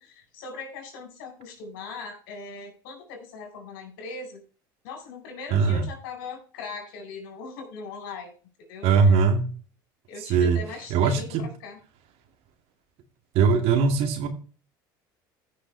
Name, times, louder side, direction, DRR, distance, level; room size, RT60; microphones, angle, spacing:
voice 1, 0.0-4.4 4.8-8.3 8.7-9.2 10.1-11.8, left 4 dB, 75° left, 4 dB, 4.3 m, -40 dB
voice 2, 5.5-5.9 8.8-9.5 10.2-10.6 10.9-11.4 13.3-14.3, right 5 dB, 60° right, 6 dB, 2.2 m, -20 dB
15.0 x 6.2 x 3.3 m, 0.39 s
hypercardioid pair, 80°, 11 cm